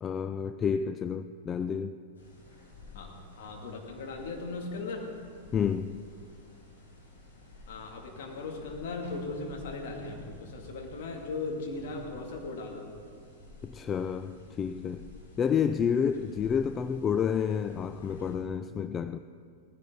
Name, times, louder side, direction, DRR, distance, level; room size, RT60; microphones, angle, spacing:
voice 1, 0.0-2.0 5.5-6.1 13.6-15.1 15.4-19.2, left 7 dB, 25° left, 0.3 m, -30 dB
sound 1, 2.1-18.4, left 2 dB, 70° left, 4.5 m, -51 dB
voice 2, 3.4-5.1 7.7-12.9, left 3 dB, 55° left, 2.5 m, -38 dB
18.0 x 15.5 x 4.0 m
figure-of-eight pair, 90°, 0 cm